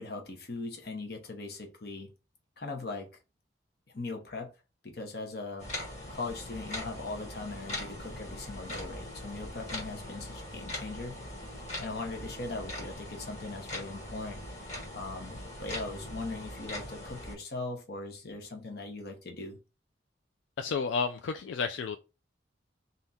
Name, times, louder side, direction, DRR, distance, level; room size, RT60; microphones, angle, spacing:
voice 1, 0.0-2.1 2.6-3.1 3.9-4.5 4.8-5.7 6.1-11.2 11.8-14.4 14.9-19.6, left 3 dB, 55° left, 1.0 m, -40 dB
sound 1, 5.6-17.4, left 1 dB, 35° left, 1.3 m, -41 dB
voice 2, 20.6-22.0, left 5 dB, 80° left, 0.4 m, -31 dB
3.5 x 2.8 x 4.1 m
head